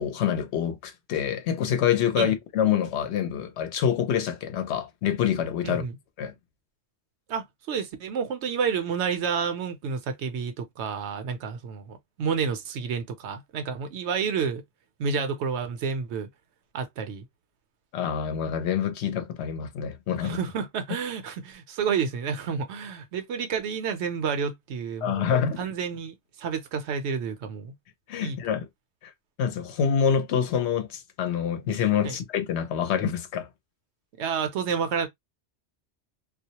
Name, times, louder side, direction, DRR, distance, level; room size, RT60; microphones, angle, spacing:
voice 1, 0.0-5.8 6.2-6.3 17.9-20.4 25.0-25.6 28.1-28.7 29.0-29.1 29.4-33.5, left 8 dB, 75° left, 0.8 m, -26 dB
voice 2, 5.6-6.0 7.3-14.6 15.0-16.3 16.7-17.2 20.2-25.3 25.6-27.7 28.2-28.4 32.0-32.2 34.2-35.1, right 6 dB, 75° right, 0.9 m, -30 dB
2.2 x 2.0 x 2.8 m
omnidirectional pair, 1.2 m